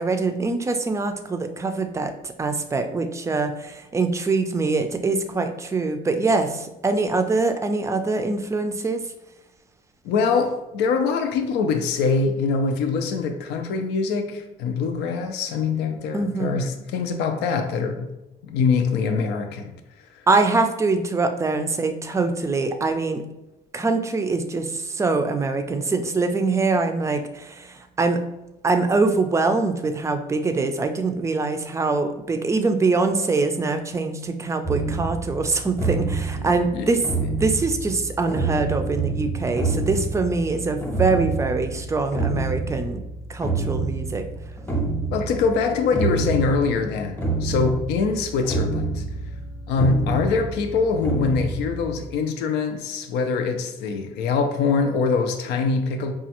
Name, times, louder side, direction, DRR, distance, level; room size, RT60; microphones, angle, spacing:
voice 1, 0.0-9.0 16.1-16.6 20.3-23.2 23.7-28.2 28.6-37.0 37.4-43.0 43.3-44.2, right 3 dB, 15° right, 7 dB, 0.4 m, -23 dB
voice 2, 10.0-18.1 18.4-19.7 20.1-20.2 36.7-36.9 45.1-49.0 49.7-56.1, left 4 dB, 90° left, 6 dB, 0.5 m, -23 dB
sound 1, 34.6-52.1, right 3 dB, 10° left, 0.8 m, -28 dB
4.9 x 2.3 x 2.9 m, 0.95 s
cardioid pair, 110°, 17 cm